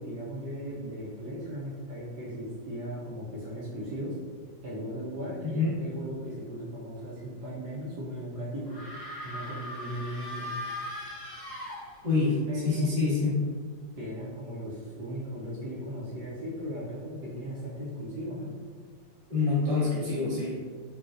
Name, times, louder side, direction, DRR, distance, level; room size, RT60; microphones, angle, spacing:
voice 1, 0.0-4.1 4.6-8.8 9.2-10.5 12.5-12.9 14.0-18.5, equal, 70° right, -6 dB, 1.2 m, -37 dB
voice 2, 5.4-5.7 12.0-12.4 12.6-13.5 19.3-20.6, left 4 dB, 25° right, -8 dB, 0.8 m, -26 dB
sound 1, 8.7-12.3, left 1 dB, 25° left, 0.5 m, -39 dB
4.0 x 2.4 x 2.4 m, 1.5 s
omnidirectional pair, 2.0 m